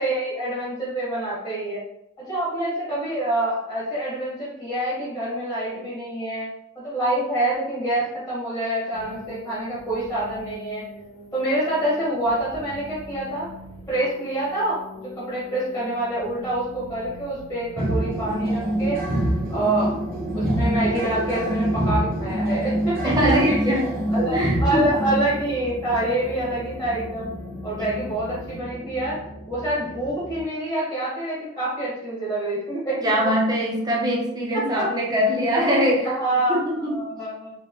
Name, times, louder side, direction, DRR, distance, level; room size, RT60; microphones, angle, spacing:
voice 1, 0.0-1.8 2.2-6.5 6.8-10.8 11.3-13.5 13.9-19.0 19.5-19.9 20.3-23.6 24.1-27.3 27.6-29.2 29.5-33.3 34.8-34.9 36.2-37.5, right 1 dB, 10° left, -8 dB, 1.7 m, -26 dB
sound 1, 8.9-28.6, left 2 dB, 90° left, 0.9 m, -42 dB
sound 2, 17.8-30.4, right 1 dB, 45° right, 1.2 m, -27 dB
voice 2, 23.0-23.9 24.3-24.9 27.8-28.0 33.0-36.1 36.5-37.0, equal, 20° right, -3 dB, 1.0 m, -22 dB
5.0 x 3.4 x 3.2 m, 0.84 s
head